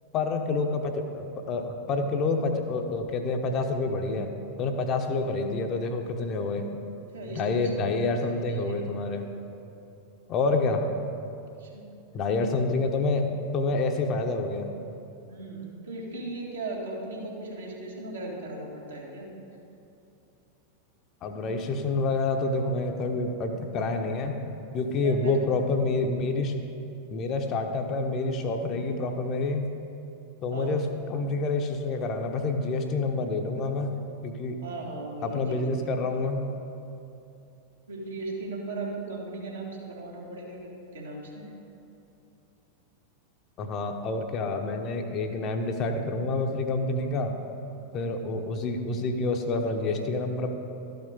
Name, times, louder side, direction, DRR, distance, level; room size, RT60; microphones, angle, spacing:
voice 1, 0.1-4.3 4.6-6.8 7.3-9.3 10.3-10.8 12.1-14.7 21.2-24.4 24.7-26.5 27.1-29.7 30.4-30.8 31.1-34.0 34.2-34.6 35.2-36.4 43.6-47.3 47.9-50.5, left 3 dB, 35° left, 4 dB, 0.8 m, -28 dB
voice 2, 7.1-8.8 11.6-11.9 12.4-12.7 15.3-19.3 25.0-25.3 30.5-30.8 34.6-35.9 37.9-41.5, right 2 dB, 70° right, -4 dB, 2.0 m, -38 dB
12.5 x 5.8 x 5.2 m, 2.7 s
figure-of-eight pair, 90°, 0 cm